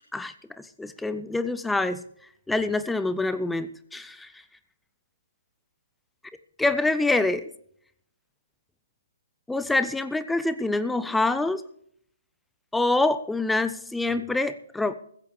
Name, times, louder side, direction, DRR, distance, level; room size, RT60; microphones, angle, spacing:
voice 1, 0.1-2.0 2.5-4.3 6.6-7.4 9.5-11.6 12.7-14.9, left 2 dB, 5° left, 13 dB, 0.5 m, -26 dB
15.5 x 15.0 x 3.2 m, 0.66 s
figure-of-eight pair, 130°, 0 cm